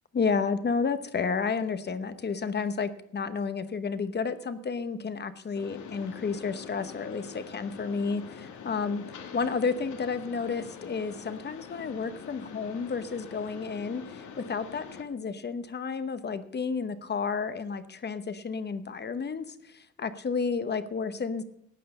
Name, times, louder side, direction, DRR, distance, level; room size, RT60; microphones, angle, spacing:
voice 1, 0.1-21.4, left 5 dB, 35° left, 12 dB, 1.0 m, -31 dB
Mechanisms, 5.5-15.0, left 6 dB, 70° left, 1.8 m, -44 dB
14.5 x 9.4 x 5.5 m, 0.76 s
cardioid pair, 135°, 30 cm